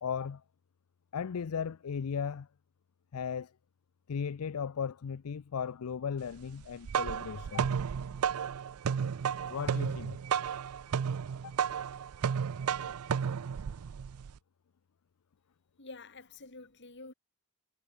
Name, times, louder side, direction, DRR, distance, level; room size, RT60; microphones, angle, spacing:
voice 1, 0.0-0.4 1.1-2.5 3.1-3.5 4.1-7.7 9.5-10.2 11.4-11.5, left 6 dB, 85° left, 0.5 m, -36 dB
sound 1, 6.6-14.4, right 7 dB, 85° right, 0.4 m, -33 dB
voice 2, 15.8-17.1, left 3 dB, 55° left, 4.0 m, -48 dB
head